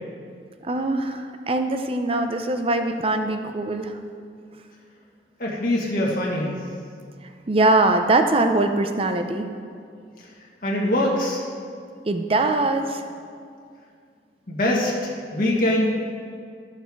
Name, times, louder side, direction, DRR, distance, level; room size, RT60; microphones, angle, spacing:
voice 1, 0.6-4.0 7.5-9.5 12.1-13.1, right 2 dB, 35° right, 6 dB, 0.6 m, -22 dB
voice 2, 5.4-6.6 10.6-11.4 14.5-15.9, left 1 dB, 50° left, -3 dB, 1.5 m, -23 dB
13.5 x 6.7 x 4.7 m, 2.2 s
head